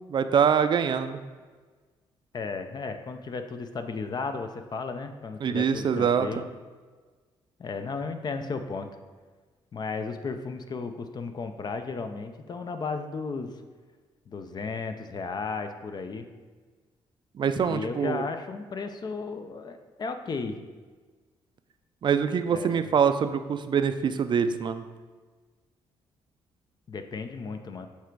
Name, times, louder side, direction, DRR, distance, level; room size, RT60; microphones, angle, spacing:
voice 1, 0.1-1.2 5.4-6.3 17.4-18.2 22.0-24.9, right 7 dB, 50° right, 10 dB, 0.4 m, -24 dB
voice 2, 2.3-6.5 7.6-8.9 9.7-13.6 14.3-16.3 17.6-20.6 22.5-22.8 26.9-27.9, left 4 dB, 40° left, 7 dB, 0.6 m, -34 dB
7.3 x 3.4 x 4.6 m, 1.4 s
cardioid pair, 90°, 10 cm